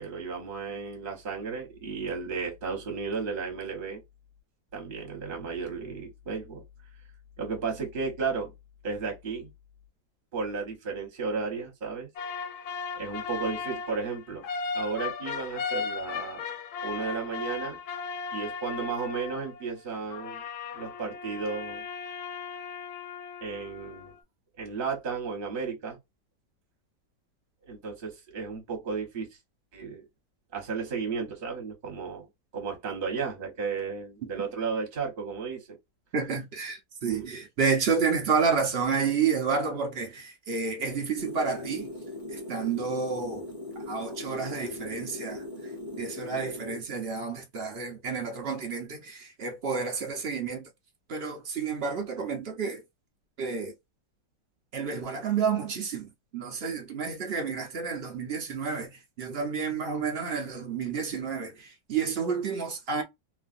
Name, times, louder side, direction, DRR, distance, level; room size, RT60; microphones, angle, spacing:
voice 1, 0.0-4.0 4.7-6.6 7.4-8.5 8.8-9.5 10.3-12.1 12.9-14.5 14.7-16.4 16.8-17.8 18.3-20.4 20.7-21.9 23.4-24.1 24.6-26.0 27.7-29.4 29.7-30.1 30.5-32.3 32.5-35.8 37.0-37.2, right 5 dB, 35° right, 1.1 m, -34 dB
sound 1, 12.2-19.7 20.1-24.2, left 5 dB, 70° left, 1.0 m, -36 dB
voice 2, 36.1-41.9 42.3-43.5 43.9-50.7 51.1-52.8 53.4-53.7 54.7-63.0, right 5 dB, 75° right, 0.5 m, -30 dB
sound 2, 41.2-46.8, left 2 dB, 40° left, 0.4 m, -39 dB
3.1 x 2.4 x 2.5 m
omnidirectional pair, 2.0 m